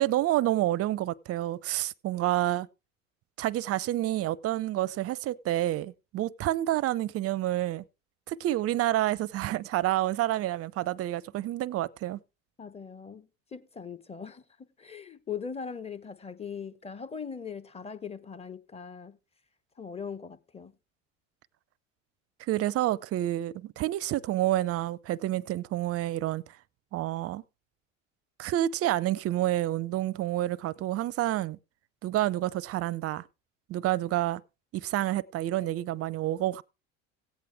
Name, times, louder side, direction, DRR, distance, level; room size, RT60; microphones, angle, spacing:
voice 1, 0.0-2.7 3.4-7.8 8.3-12.2 22.5-26.4 26.9-27.4 28.4-31.6 32.0-33.3 33.7-34.4 34.7-36.6, right 14 dB, 40° right, 0.5 m, -28 dB
voice 2, 12.6-19.2 19.8-20.7, left 6 dB, 15° left, 0.9 m, -40 dB
15.5 x 8.4 x 3.4 m
hypercardioid pair, 75°, 39 cm